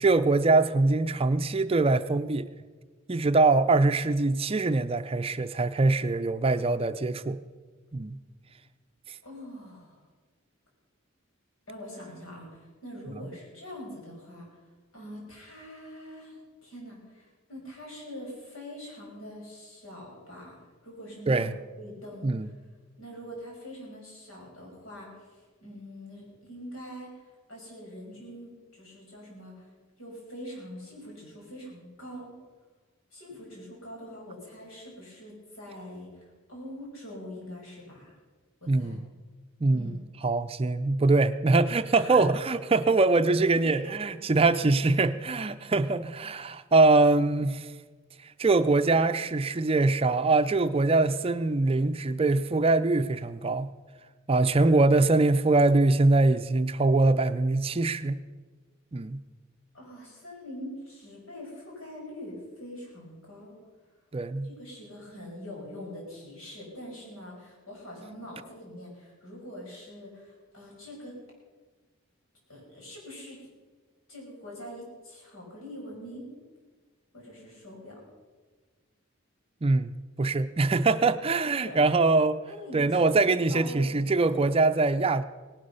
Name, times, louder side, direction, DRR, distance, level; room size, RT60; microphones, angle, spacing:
voice 1, 0.0-2.5 3.1-7.4 7.9-8.2 9.1-9.2 21.3-21.5 22.2-22.5 38.7-39.0 39.6-40.0 40.2-47.7 48.2-53.7 54.3-58.2 58.9-59.2 64.1-64.5 79.6-82.4 82.7-85.2, right 3 dB, 30° right, 11 dB, 0.5 m, -23 dB
voice 2, 9.2-10.1 11.7-14.5 14.9-21.5 21.8-22.5 23.0-29.7 30.0-32.3 33.1-38.1 38.6-39.0 39.7-40.0 41.9-42.2 43.5-43.9 59.7-63.6 64.4-71.2 72.5-73.5 74.1-76.3 77.1-78.0 81.4-81.8 82.5-84.7, equal, 85° left, -2 dB, 5.9 m, -44 dB
18.0 x 11.5 x 5.5 m, 1.4 s
head